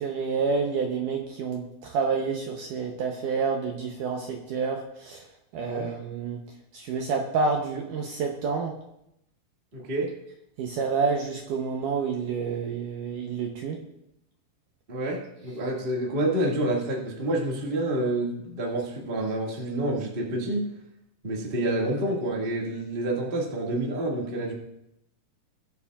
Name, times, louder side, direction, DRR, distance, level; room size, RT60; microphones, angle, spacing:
voice 1, 0.0-5.3 5.5-6.4 6.7-8.8 10.6-13.8, right 5 dB, 75° right, 1 dB, 1.9 m, -28 dB
voice 2, 9.7-10.1 14.9-20.7 21.2-24.5, right 1 dB, 50° right, -2 dB, 0.6 m, -28 dB
20.5 x 7.2 x 2.4 m, 0.81 s
omnidirectional pair, 4.7 m